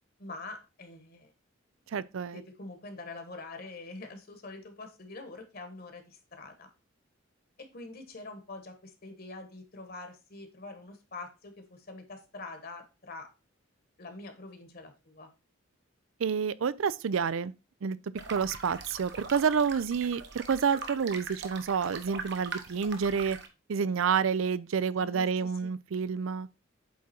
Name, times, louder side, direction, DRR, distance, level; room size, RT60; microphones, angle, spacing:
voice 1, 0.2-1.3 2.3-6.7 7.6-13.3 14.0-15.3 25.0-25.7, left 3 dB, 45° left, 1.3 m, -45 dB
voice 2, 1.9-2.4 16.2-17.5 17.8-18.0 18.3-23.4 23.7-26.5, right 6 dB, 75° right, 0.4 m, -29 dB
sound 1, 18.2-23.5, right 4 dB, 55° right, 1.0 m, -42 dB
8.5 x 3.7 x 4.3 m
head